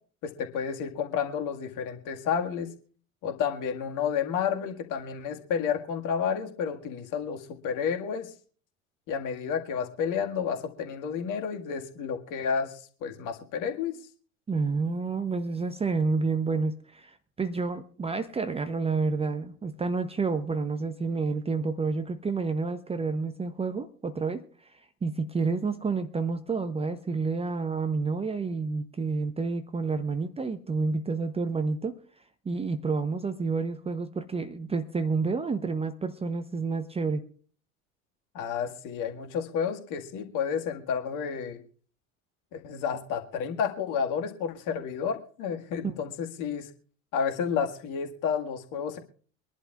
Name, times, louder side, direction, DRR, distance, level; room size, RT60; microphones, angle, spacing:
voice 1, 0.2-2.7 3.2-8.3 9.1-12.7 13.0-14.0 38.3-41.6 42.5-46.7 47.1-49.0, left 7 dB, 45° left, 5 dB, 1.9 m, -31 dB
voice 2, 14.5-24.4 24.7-32.0 32.4-37.2 45.8-46.0, right 4 dB, 15° right, 10 dB, 0.8 m, -29 dB
24.5 x 11.0 x 2.4 m, 0.43 s
figure-of-eight pair, 75°, 42 cm